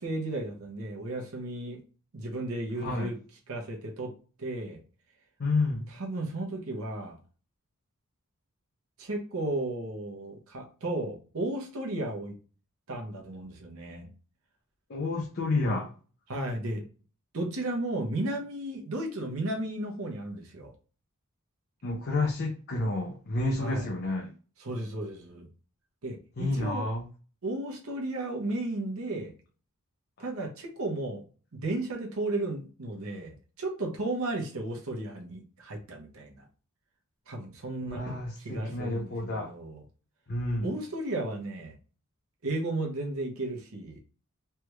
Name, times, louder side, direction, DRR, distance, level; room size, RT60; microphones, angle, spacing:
voice 1, 0.0-1.8 2.1-3.1 3.5-4.1 4.4-4.8 6.0-7.2 9.0-12.3 12.9-14.1 16.3-16.8 17.3-20.7 23.6-23.9 24.6-25.5 26.0-26.9 27.4-29.3 30.2-31.2 31.5-36.4 37.3-38.0 38.4-39.8 40.6-41.7 42.4-44.0, right 2 dB, 65° right, 1 dB, 0.9 m, -34 dB
voice 2, 2.8-3.1 5.4-5.9 14.9-15.9 21.8-24.3 26.4-27.0 37.9-39.5 40.3-40.7, left 2 dB, 45° left, 0 dB, 0.6 m, -30 dB
3.3 x 2.3 x 3.1 m, 0.38 s
head